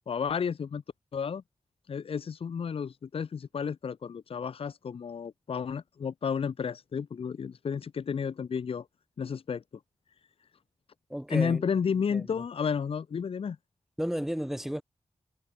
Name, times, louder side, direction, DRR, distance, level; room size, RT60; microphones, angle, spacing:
voice 1, 0.1-0.8 1.1-1.4 1.9-8.9 9.2-9.6 11.3-13.6, left 6 dB, 70° left, 0.7 m, -32 dB
voice 2, 11.1-11.6 12.1-12.4 14.0-14.8, equal, 5° right, 5.1 m, -33 dB
wide cardioid pair, 135°, 10 cm